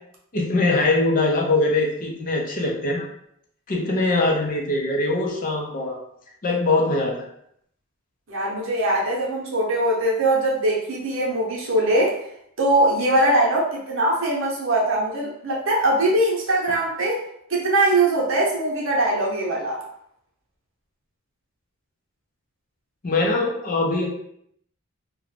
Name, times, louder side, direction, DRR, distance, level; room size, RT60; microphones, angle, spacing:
voice 1, 0.3-3.1 3.7-6.0 6.4-7.3 23.0-24.1, left 2 dB, 40° left, 0 dB, 0.5 m, -22 dB
voice 2, 8.3-12.2 12.6-17.2 17.5-19.8, right 1 dB, 60° right, -4 dB, 0.8 m, -21 dB
2.4 x 2.2 x 3.1 m, 0.72 s
head